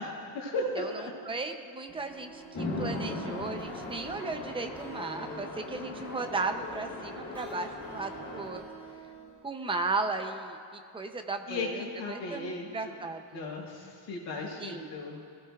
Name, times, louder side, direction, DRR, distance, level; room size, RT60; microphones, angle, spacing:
voice 1, 0.0-1.1 11.5-11.7 12.0-13.0 13.3-15.2, left 2 dB, 60° left, -5 dB, 3.6 m, -36 dB
voice 2, 0.7-8.6 9.4-13.4 14.6-14.9, right 3 dB, 10° right, 6 dB, 0.5 m, -36 dB
sound 1, 1.9-9.5, right 3 dB, 5° left, 3.6 m, -49 dB
Chatter / Traffic noise roadway noise / Train, 2.5-8.5, left 2 dB, 35° left, 2.2 m, -38 dB
22.0 x 16.0 x 2.3 m, 2.3 s
cardioid pair, 175°, 47 cm